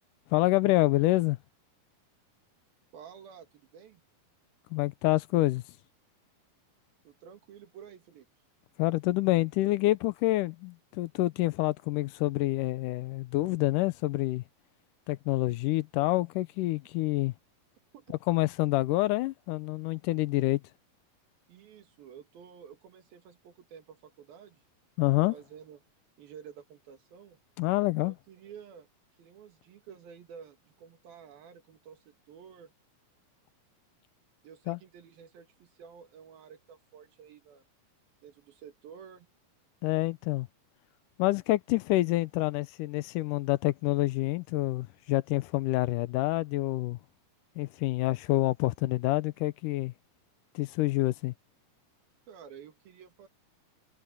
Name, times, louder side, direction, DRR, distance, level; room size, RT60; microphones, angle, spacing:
voice 1, 0.3-1.4 4.7-5.6 8.8-14.4 15.1-17.3 18.3-20.6 25.0-25.3 27.6-28.1 34.7-34.8 39.8-40.5 41.2-47.0 47.6-49.9 50.6-51.3, left 18 dB, 80° left, 2.0 m, -27 dB
voice 2, 2.9-4.0 7.1-8.3 17.9-18.1 21.5-24.6 25.3-25.8 26.2-27.4 28.0-28.9 29.2-32.7 34.4-37.7 38.2-39.3 52.3-53.3, right 7 dB, 80° right, 3.9 m, -51 dB
omnidirectional pair, 4.1 m